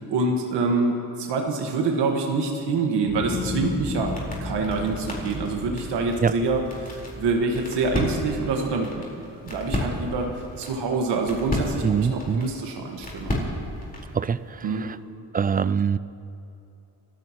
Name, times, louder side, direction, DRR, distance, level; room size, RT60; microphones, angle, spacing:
voice 1, 0.1-4.1 4.4-9.0 9.4-10.3 10.6-11.8 12.1-13.4 14.6-14.9, right 3 dB, 85° right, 2 dB, 1.6 m, -26 dB
sound 1, 3.0-9.4 9.8-10.4, left 3 dB, 85° left, 2.0 m, -35 dB
sound 2, 3.3-14.2, left 1 dB, 20° left, 4.4 m, -34 dB
voice 2, 11.8-12.5 14.1-15.0 15.3-16.0, right 6 dB, 25° right, 16 dB, 0.3 m, -24 dB
28.5 x 13.5 x 3.0 m, 2.8 s
cardioid pair, 75°, 41 cm